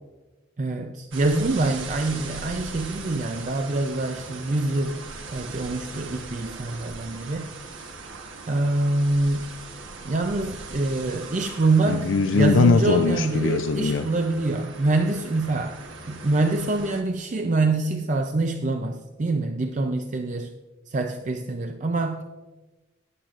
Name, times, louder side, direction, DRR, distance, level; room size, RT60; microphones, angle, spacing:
voice 1, 0.6-5.0 5.3-7.6 8.5-9.5 10.0-20.5 20.9-22.2, right 2 dB, 40° right, 0.5 m, -25 dB
sound 1, 1.1-17.0, right 3 dB, 90° right, 1.2 m, -40 dB
voice 2, 11.9-14.1, left 4 dB, 80° left, 0.4 m, -21 dB
15.0 x 10.0 x 2.5 m
head